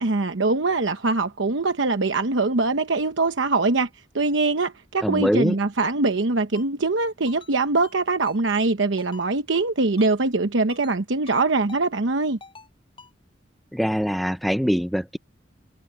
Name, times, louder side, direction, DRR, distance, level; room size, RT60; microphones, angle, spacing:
voice 1, 0.0-3.9 4.1-12.4, right 3 dB, 85° right, 1.0 m, -23 dB
voice 2, 5.0-5.6 13.7-15.2, equal, ahead, 0.6 m, -23 dB
Ringtone, 6.5-6.7 7.3-7.5 7.8-8.0 8.3-8.4 9.0-9.2 9.5-9.7 10.0-10.1 10.7-11.0 11.3-11.4 11.7-11.8 12.4-12.7 13.0-13.1, left 4 dB, 30° left, 7.9 m, -46 dB
head